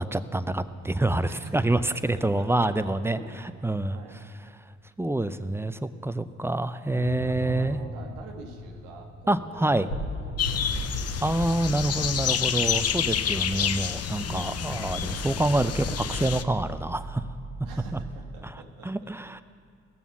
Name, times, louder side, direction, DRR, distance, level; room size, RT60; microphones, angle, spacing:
voice 1, 0.0-3.2 3.6-4.0 5.0-7.8 9.3-9.9 11.2-17.2 17.9-18.0 18.8-19.4, right 2 dB, 5° right, 12 dB, 0.5 m, -27 dB
voice 2, 1.2-3.4 3.9-4.2 6.9-11.0 14.3-14.7 17.6-19.1, right 4 dB, 85° right, 3 dB, 1.2 m, -46 dB
sound 1, 6.9-18.3, equal, 80° left, 3.3 m, -38 dB
sound 2, 10.4-16.4, left 8 dB, 45° left, 0.7 m, -29 dB
17.0 x 7.0 x 7.0 m, 2.3 s
hypercardioid pair, 45°, 33 cm